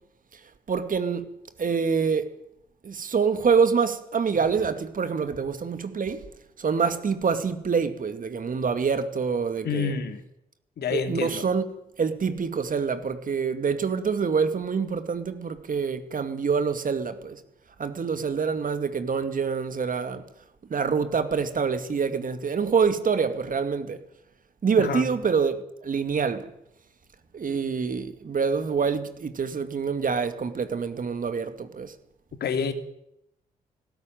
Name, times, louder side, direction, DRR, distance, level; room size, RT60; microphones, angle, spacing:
voice 1, 0.7-1.3 1.6-2.3 2.8-6.3 6.6-9.9 10.9-11.6 12.0-17.4 17.8-20.2 20.7-24.0 24.6-26.5 27.3-31.9, right 5 dB, 45° right, 2.4 m, -26 dB
voice 2, 9.6-10.2 10.8-11.4 24.8-25.0 32.4-32.7, left 6 dB, 60° left, 2.7 m, -28 dB
19.0 x 17.0 x 9.2 m
hypercardioid pair, 40°, 19 cm